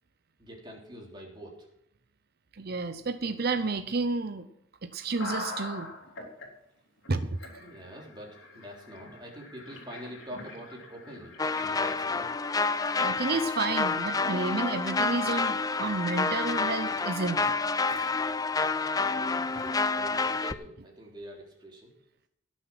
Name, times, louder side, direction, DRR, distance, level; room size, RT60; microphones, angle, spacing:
voice 1, 0.4-1.6 7.5-12.3 19.1-21.9, right 1 dB, 25° right, -2 dB, 3.6 m, -45 dB
voice 2, 2.6-4.5 4.8-5.9 7.1-7.4 13.0-17.5 17.9-18.1 19.5-19.7, right 3 dB, 55° right, 8 dB, 0.8 m, -31 dB
sound 1, 5.2-6.5 7.0-7.1 7.4-12.3, left 2 dB, 85° left, 3.3 m, -42 dB
sound 2, 11.4-20.5, left 4 dB, 20° left, 0.4 m, -29 dB
17.5 x 7.3 x 6.1 m, 0.76 s
head